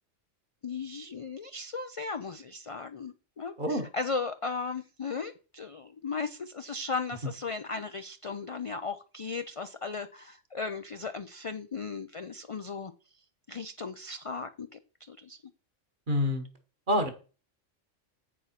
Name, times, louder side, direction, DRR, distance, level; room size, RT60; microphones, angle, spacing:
voice 1, 0.6-12.9 13.5-15.4, left 4 dB, 55° left, 9 dB, 0.3 m, -36 dB
voice 2, 16.1-16.5 16.9-17.1, left 1 dB, 40° right, 5 dB, 1.5 m, -26 dB
8.2 x 4.9 x 5.8 m, 0.36 s
omnidirectional pair, 1.3 m